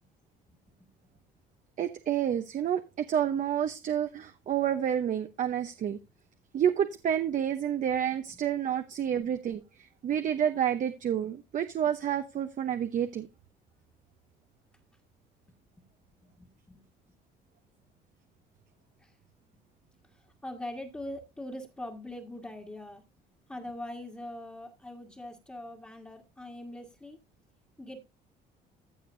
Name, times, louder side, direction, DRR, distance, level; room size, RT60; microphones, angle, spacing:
voice 1, 0.5-1.1 8.3-8.4 16.3-16.8 19.0-19.1 20.1-23.0 23.5-27.2 27.8-28.0, left 1 dB, 10° left, -2 dB, 1.7 m, -42 dB
voice 2, 1.8-6.0 6.5-9.6 10.0-13.3, right 9 dB, 50° right, 8 dB, 0.8 m, -29 dB
15.0 x 6.7 x 2.6 m, 0.26 s
cardioid pair, 110°, 17 cm